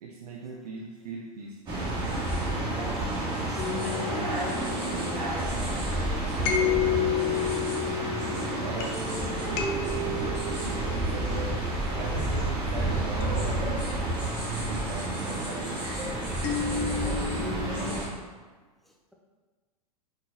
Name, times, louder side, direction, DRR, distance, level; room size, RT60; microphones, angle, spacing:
voice 1, 0.0-1.8 8.6-9.0 9.4-9.7 10.4-11.6 12.0-14.2 14.5-15.9, right 3 dB, 75° right, 0.5 m, -39 dB
sound 1, 1.7-18.1, right 1 dB, 25° right, 1.5 m, -30 dB
voice 2, 2.6-7.8 16.5-18.3, equal, ahead, 0.6 m, -40 dB
sound 2, 3.6-5.5 6.4-12.2 13.2-14.6 16.4-18.0, left 7 dB, 45° left, 0.7 m, -32 dB
4.7 x 3.9 x 2.7 m
hypercardioid pair, 100°, 20 cm